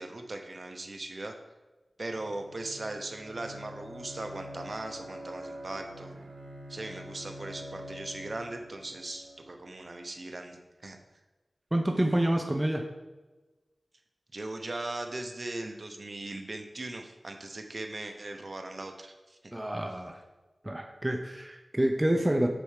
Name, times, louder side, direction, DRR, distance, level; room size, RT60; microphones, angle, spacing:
voice 1, 0.0-1.3 2.0-6.1 6.7-11.0 14.3-19.4, right 2 dB, 55° right, 5 dB, 0.9 m, -39 dB
Bowed string instrument, 2.0-9.8, equal, 80° right, 1.1 m, -46 dB
voice 2, 11.7-12.9 19.5-20.2 20.6-22.5, right 1 dB, 20° right, 4 dB, 0.7 m, -28 dB
6.4 x 4.6 x 6.5 m, 1.2 s
wide cardioid pair, 65°, 0 cm